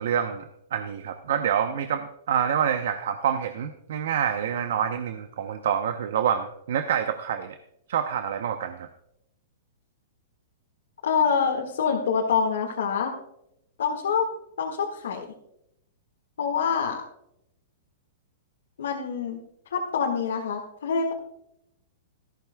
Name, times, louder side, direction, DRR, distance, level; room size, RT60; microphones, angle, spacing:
voice 1, 0.0-7.6 7.9-8.9, right 8 dB, 70° right, 8 dB, 0.7 m, -27 dB
voice 2, 11.0-13.1 13.8-14.3 14.6-15.3 16.4-17.0 18.8-19.4 19.7-21.1, left 6 dB, 85° left, 0 dB, 1.7 m, -25 dB
14.0 x 13.0 x 2.2 m, 0.79 s
hypercardioid pair, 135°, 0 cm